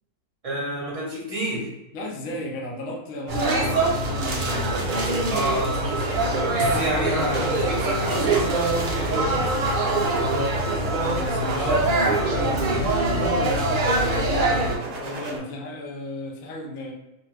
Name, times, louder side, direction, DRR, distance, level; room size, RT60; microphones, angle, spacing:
voice 1, 0.4-1.7 5.3-6.2 6.5-8.7 11.6-12.9, right 1 dB, 35° right, -5 dB, 0.6 m, -29 dB
voice 2, 1.9-4.8 11.1-11.8 14.9-16.9, left 1 dB, 65° left, 0 dB, 0.9 m, -35 dB
sound 1, 3.3-14.8, right 2 dB, 85° right, 0.4 m, -23 dB
sound 2, 3.4-13.2 14.5-15.4, right 3 dB, 65° right, 0.8 m, -34 dB
2.5 x 2.4 x 3.1 m, 0.93 s
omnidirectional pair, 1.6 m